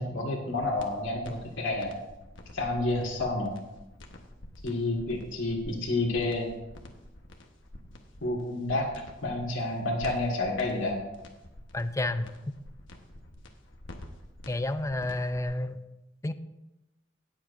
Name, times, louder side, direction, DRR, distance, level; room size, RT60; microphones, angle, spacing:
voice 1, 0.0-1.9 2.5-3.6 4.6-6.5 8.2-8.9 9.2-11.0, left 2 dB, 90° left, -4 dB, 1.9 m, -29 dB
sound 1, 0.6-15.5, left 1 dB, 75° left, 1.2 m, -48 dB
voice 2, 11.7-12.3 14.5-15.8 16.2-16.3, left 2 dB, 15° left, 11 dB, 0.5 m, -30 dB
18.5 x 7.3 x 2.6 m, 0.99 s
head